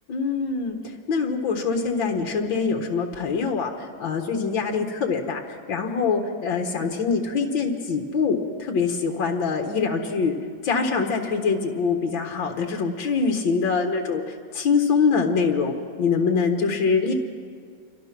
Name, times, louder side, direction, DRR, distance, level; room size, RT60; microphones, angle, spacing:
voice 1, 0.1-5.4 5.7-10.4 10.6-17.1, left 5 dB, 80° left, 3 dB, 2.2 m, -24 dB
28.5 x 24.0 x 6.0 m, 2.1 s
omnidirectional pair, 2.1 m